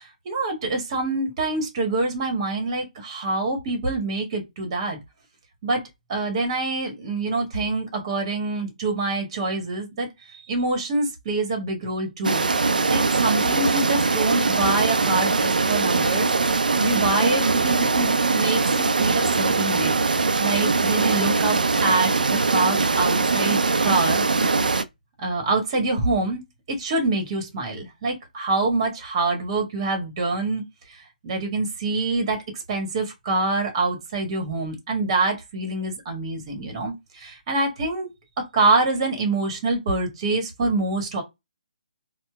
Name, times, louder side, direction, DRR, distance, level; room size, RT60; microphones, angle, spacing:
voice 1, 0.0-5.0 5.6-5.8 6.1-10.1 10.5-12.4 12.9-16.3 16.8-19.9 20.4-24.2 25.2-26.4 26.8-30.6 31.2-32.4 32.7-38.1 38.5-41.2, right 3 dB, 35° right, 1.1 m, -25 dB
sound 1, 12.2-24.8, right 4 dB, 65° right, 0.4 m, -21 dB
4.3 x 2.1 x 2.2 m
figure-of-eight pair, 140°, 5 cm